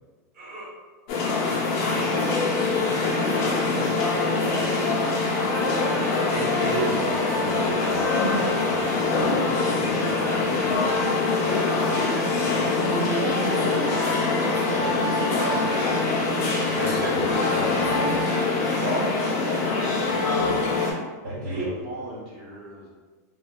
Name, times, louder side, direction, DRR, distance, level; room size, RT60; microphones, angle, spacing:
voice 1, 0.3-0.7 2.8-2.9 3.6-3.9 6.3-11.1 11.5-13.8 14.6-14.9 15.2-16.0 16.4-18.3 18.7-19.0 20.1-20.6 21.2-21.6, right 1 dB, 80° right, -8 dB, 1.4 m, -34 dB
sound 1, 1.1-20.9, left 3 dB, 50° left, 0.6 m, -24 dB
voice 2, 3.8-6.4, equal, 15° right, 1 dB, 0.3 m, -40 dB
voice 3, 20.3-20.9 21.6-22.9, right 1 dB, 45° right, -4 dB, 0.8 m, -39 dB
2.4 x 2.3 x 2.2 m, 1.4 s
supercardioid pair, 135°, 9 cm